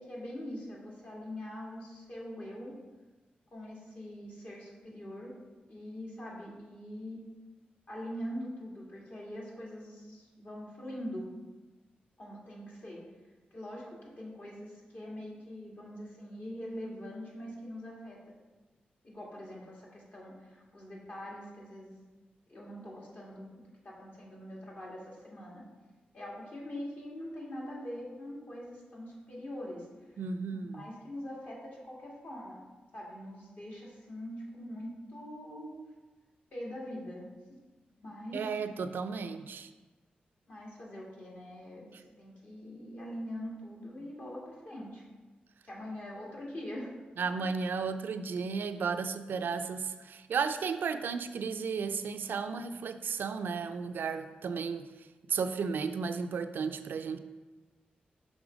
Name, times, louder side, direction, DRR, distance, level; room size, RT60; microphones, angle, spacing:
voice 1, 0.0-2.7 3.5-5.3 5.7-7.2 7.9-11.3 12.2-13.0 13.5-18.3 19.0-22.0 22.5-25.6 26.1-29.9 30.5-32.6 32.9-35.7 36.5-37.2 38.0-38.4 40.5-45.0 45.6-46.9, equal, 55° left, -4 dB, 1.9 m, -43 dB
voice 2, 30.2-30.8 38.3-39.7 47.2-54.9 55.3-57.2, right 5 dB, 75° right, 9 dB, 0.3 m, -34 dB
6.1 x 3.4 x 5.1 m, 1.2 s
cardioid pair, 60°, 3 cm